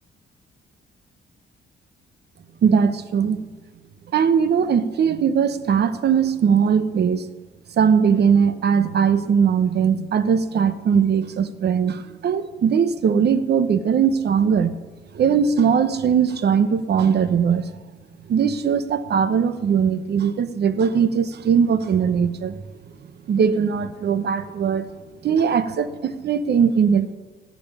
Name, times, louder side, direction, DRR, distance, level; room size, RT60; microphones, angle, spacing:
voice 1, 2.6-3.4 4.1-7.3 7.8-14.8 15.1-17.8 18.3-22.6 23.3-24.9 25.2-27.1, right 7 dB, 55° right, 12 dB, 0.9 m, -20 dB
17.0 x 7.8 x 5.5 m, 1.4 s
cardioid pair, 90°, 20 cm